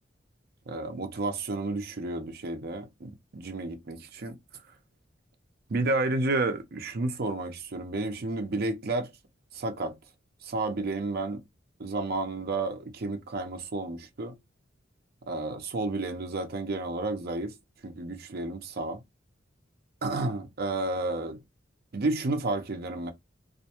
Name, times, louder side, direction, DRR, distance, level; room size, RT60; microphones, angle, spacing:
voice 1, 0.7-4.4 5.7-9.1 9.5-10.0 10.4-11.4 11.8-14.4 15.3-17.5 17.8-19.0 20.0-21.4 21.9-23.1, right 2 dB, 55° right, 0.6 m, -31 dB
2.5 x 2.1 x 2.8 m
head